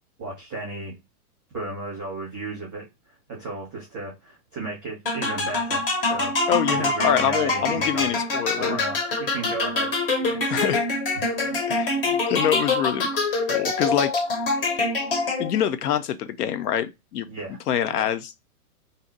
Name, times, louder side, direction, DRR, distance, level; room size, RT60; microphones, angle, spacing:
voice 1, 0.2-0.9 1.5-6.4 6.6-8.2 8.5-10.6 11.1-12.2 17.3-18.1, right 2 dB, ahead, 0.5 m, -35 dB
sound 1, 5.1-15.7, left 3 dB, 40° left, 0.7 m, -25 dB
voice 2, 6.5-8.8 10.5-10.8 11.7-11.9 12.3-13.1 13.5-14.1 15.4-17.3 17.7-18.5, left 10 dB, 80° left, 0.6 m, -25 dB
2.7 x 2.1 x 3.8 m
hypercardioid pair, 175°, 46 cm